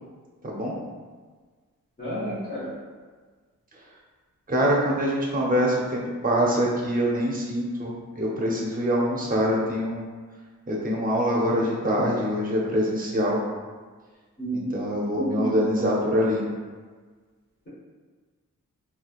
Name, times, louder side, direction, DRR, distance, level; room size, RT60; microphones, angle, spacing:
voice 1, 2.0-2.7 14.4-14.7 15.1-15.8, right 1 dB, 30° left, -12 dB, 1.0 m, -30 dB
voice 2, 4.5-10.1 10.7-13.4 14.5-16.4, equal, 25° right, -3 dB, 0.6 m, -24 dB
3.3 x 3.1 x 2.4 m, 1.4 s
wide cardioid pair, 165°, 33 cm